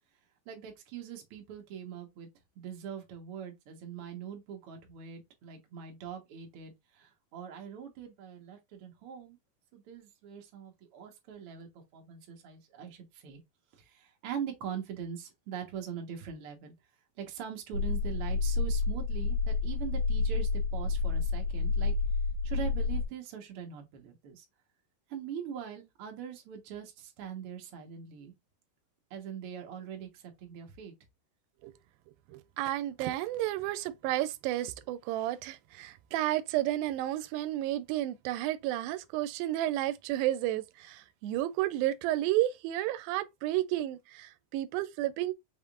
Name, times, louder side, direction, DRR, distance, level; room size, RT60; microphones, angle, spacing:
voice 1, 0.5-2.3 2.6-9.4 9.7-13.4 13.7-16.7 17.2-21.9 22.4-24.4 25.1-28.3 29.1-30.9, right 8 dB, 55° right, 1.7 m, -42 dB
sound 1, 17.7-23.1, left 4 dB, 70° left, 2.0 m, -29 dB
voice 2, 32.3-45.3, right 14 dB, 90° right, 2.3 m, -32 dB
5.6 x 3.6 x 2.4 m
omnidirectional pair, 4.1 m